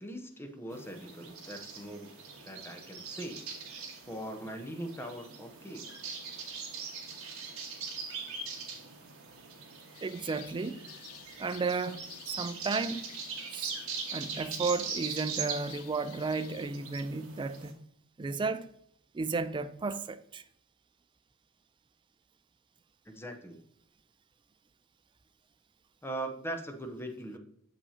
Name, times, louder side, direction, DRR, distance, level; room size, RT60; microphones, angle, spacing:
voice 1, 0.0-2.1 2.4-3.6 4.0-6.0 23.1-23.6 26.0-27.4, right 1 dB, 10° left, 0.7 m, -41 dB
sound 1, 0.7-17.7, right 5 dB, 70° right, 1.4 m, -41 dB
sound 2, 9.9-16.7, left 11 dB, 75° left, 0.5 m, -52 dB
voice 2, 10.0-10.8 11.4-13.1 13.5-13.7 14.1-17.9 18.2-18.6 19.1-20.4, right 4 dB, 20° right, 0.3 m, -33 dB
7.1 x 5.6 x 2.7 m
head